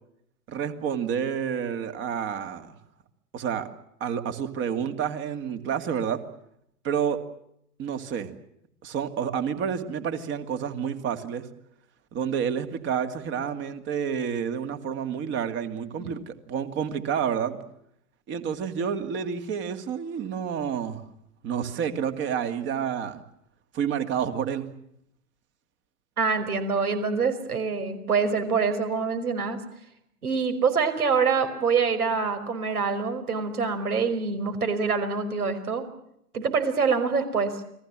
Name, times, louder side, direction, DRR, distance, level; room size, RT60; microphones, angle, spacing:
voice 1, 0.5-2.8 3.3-3.7 4.0-6.2 6.8-7.2 7.8-8.3 8.8-11.5 12.1-17.6 18.3-21.0 21.4-23.2 23.7-24.7, right 7 dB, 25° right, 9 dB, 2.4 m, -29 dB
voice 2, 26.2-29.6 30.2-35.8 36.3-37.6, right 5 dB, 70° right, 9 dB, 5.5 m, -25 dB
30.0 x 21.5 x 7.5 m, 0.76 s
figure-of-eight pair, 115°, 46 cm